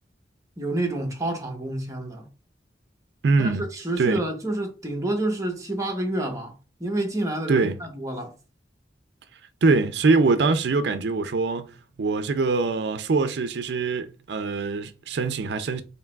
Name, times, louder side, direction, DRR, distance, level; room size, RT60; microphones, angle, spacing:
voice 1, 0.6-2.3 3.4-6.5 6.8-8.3, right 1 dB, 20° right, 0.9 m, -28 dB
voice 2, 3.2-3.6 4.0-4.2 7.5-7.8 9.6-11.7 12.0-15.8, right 4 dB, 70° right, 0.4 m, -23 dB
4.6 x 3.2 x 2.3 m
head